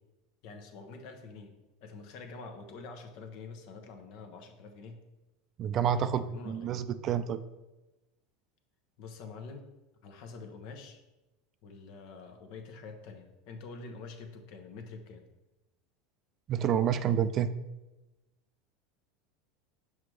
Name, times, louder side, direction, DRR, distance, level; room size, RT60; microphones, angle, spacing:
voice 1, 0.4-1.5 1.8-5.0 5.9-6.8 9.0-9.7 10.0-11.0 11.6-15.2, left 4 dB, 60° left, 5 dB, 0.9 m, -46 dB
voice 2, 5.6-7.4 16.5-17.5, right 9 dB, 45° right, 12 dB, 0.4 m, -29 dB
5.9 x 4.8 x 3.3 m, 1.0 s
hypercardioid pair, 95°, 0 cm